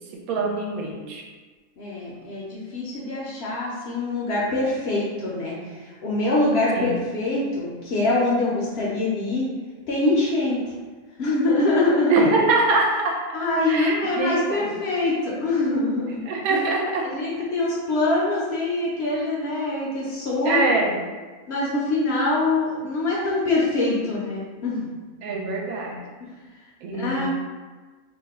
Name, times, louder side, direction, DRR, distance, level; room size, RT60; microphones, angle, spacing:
voice 1, 0.3-1.2 6.7-6.9 12.1-13.2 13.7-14.7 16.3-17.0 20.4-21.0 25.2-26.0 26.8-27.3, right 3 dB, 90° right, -1 dB, 1.0 m, -23 dB
voice 2, 1.8-9.5 9.9-10.6 11.2-12.3 13.3-16.2 16.5-16.6 17.0-20.7 21.5-24.9 26.2-26.3 26.9-27.3, left 2 dB, 65° left, -5 dB, 0.7 m, -24 dB
2.7 x 2.1 x 3.4 m, 1.4 s
omnidirectional pair, 1.5 m